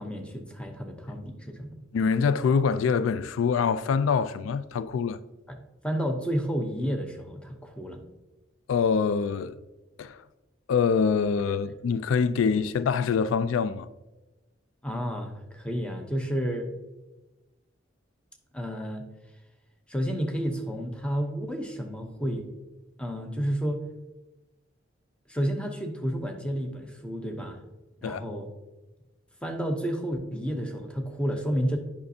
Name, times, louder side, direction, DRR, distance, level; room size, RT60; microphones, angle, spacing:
voice 1, 0.0-1.7 5.5-5.6 5.8-8.0 12.6-12.7 14.8-16.7 18.5-19.1 19.9-22.5 23.0-23.8 25.3-27.6 28.0-28.5 29.4-31.8, equal, 5° left, 0.7 m, -31 dB
voice 2, 1.9-5.2 8.7-9.6 10.0-10.2 10.7-13.9 28.0-28.2, left 6 dB, 80° left, 0.3 m, -25 dB
8.8 x 5.8 x 2.7 m
head